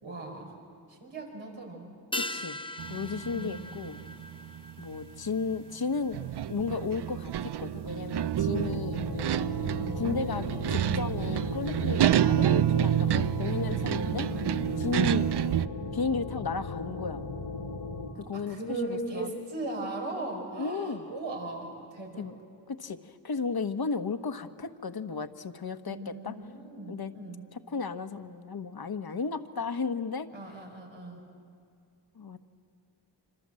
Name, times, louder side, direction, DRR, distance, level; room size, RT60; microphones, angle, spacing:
voice 1, 0.0-0.6 0.9-1.9 3.3-3.6 8.5-9.1 9.8-10.0 13.9-14.6 18.3-22.3 25.9-27.4 30.3-31.2, right 2 dB, 85° right, 0 dB, 5.3 m, -39 dB
sound 1, 2.1-6.8 7.1-7.2, left 2 dB, 10° left, 0.9 m, -40 dB
voice 2, 2.2-2.6 2.9-4.0 4.8-6.2 6.5-9.0 9.9-14.3 14.8-15.3 15.9-17.2 18.2-19.3 20.6-21.1 22.2-22.3 22.7-26.4 26.9-27.1 27.7-30.3 32.1-32.5, left 5 dB, 55° left, 9 dB, 1.4 m, -34 dB
sound 2, 2.8-5.6 6.1-15.7, right 11 dB, 60° right, 0.6 m, -28 dB
sound 3, 8.5-18.1, left 3 dB, 90° left, 3.0 m, -37 dB
26.0 x 26.0 x 7.8 m, 2.4 s
cardioid pair, 50°, 46 cm